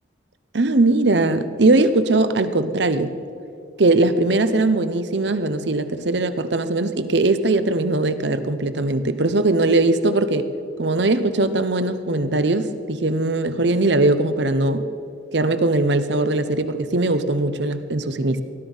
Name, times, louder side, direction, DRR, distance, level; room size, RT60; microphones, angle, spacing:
voice 1, 0.5-3.1 3.8-10.5 10.8-14.9 15.3-18.4, right 2 dB, 75° right, 11 dB, 0.9 m, -20 dB
20.0 x 12.5 x 5.6 m, 2.7 s
head